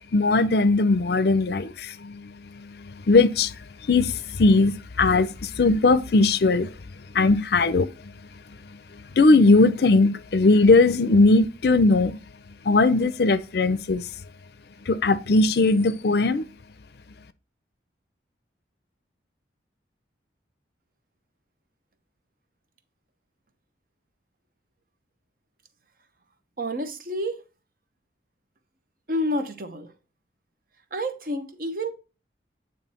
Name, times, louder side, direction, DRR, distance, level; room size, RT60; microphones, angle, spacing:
voice 1, 0.1-8.1 8.5-12.2 12.6-14.0 14.9-16.5, left 3 dB, 60° left, 0.5 m, -20 dB
voice 2, 26.6-27.4 29.1-29.9 30.9-31.9, equal, 50° right, 1.0 m, -29 dB
9.0 x 3.2 x 4.3 m
head